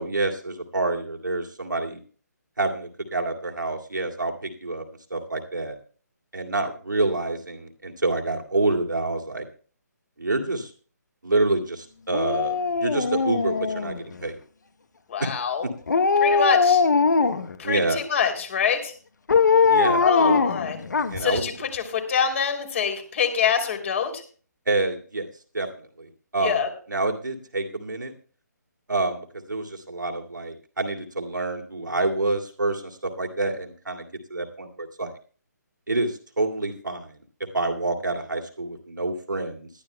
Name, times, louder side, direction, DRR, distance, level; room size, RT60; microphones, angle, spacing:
voice 1, 0.0-2.0 2.6-4.8 5.1-5.8 6.3-9.5 10.2-10.7 11.2-14.4 15.2-15.3 15.6-15.7 17.6-18.0 19.7-20.4 21.1-21.4 24.7-25.3 25.5-28.1 28.9-35.1 35.9-37.2 37.5-39.7, right 2 dB, 90° right, 2 dB, 2.3 m, -27 dB
Dog, 12.1-14.2 15.9-17.6 19.3-21.4 21.7-21.8, left 5 dB, 70° left, 1.0 m, -21 dB
voice 2, 15.1-15.6 16.2-16.8 17.6-18.9 20.0-20.8 21.2-24.2 26.4-26.7, left 7 dB, 45° left, 5 dB, 3.1 m, -25 dB
20.0 x 12.0 x 2.2 m, 0.41 s
figure-of-eight pair, 145°, 10 cm